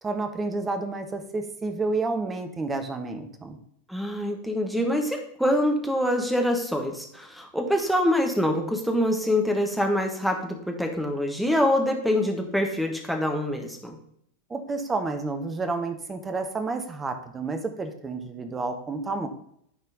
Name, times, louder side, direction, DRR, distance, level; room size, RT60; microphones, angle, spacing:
voice 1, 0.0-3.6 14.5-19.3, right 3 dB, 15° right, 7 dB, 0.8 m, -30 dB
voice 2, 3.9-14.0, left 1 dB, ahead, 3 dB, 1.2 m, -25 dB
10.0 x 4.3 x 4.0 m, 0.69 s
figure-of-eight pair, 90°, 0 cm